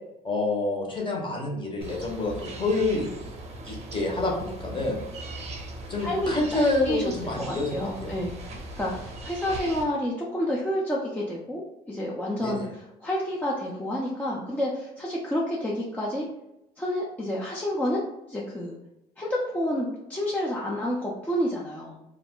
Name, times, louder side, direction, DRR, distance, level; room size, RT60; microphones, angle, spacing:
voice 1, 0.2-3.1 3.6-4.9 5.9-8.1 12.4-12.7, left 2 dB, 30° left, -1 dB, 0.8 m, -27 dB
sound 1, 1.8-9.8, right 2 dB, 40° right, 0.6 m, -39 dB
voice 2, 6.0-6.6 6.8-7.2 7.5-8.4 8.8-11.6 11.9-16.3 16.8-18.0 18.3-18.8 19.2-22.0, equal, 10° left, -4 dB, 0.4 m, -29 dB
2.4 x 2.0 x 3.5 m, 0.90 s
cardioid pair, 110°, 17 cm